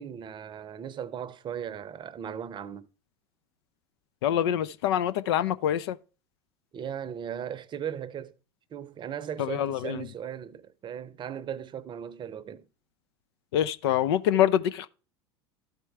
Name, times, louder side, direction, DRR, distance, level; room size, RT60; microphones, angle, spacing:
voice 1, 0.0-2.9 6.7-8.3 8.7-12.6, right 8 dB, 35° right, 0.7 m, -37 dB
voice 2, 4.2-6.0 9.4-10.1 13.5-14.9, left 10 dB, 70° left, 0.5 m, -25 dB
13.0 x 4.5 x 3.3 m
hypercardioid pair, 80°, 14 cm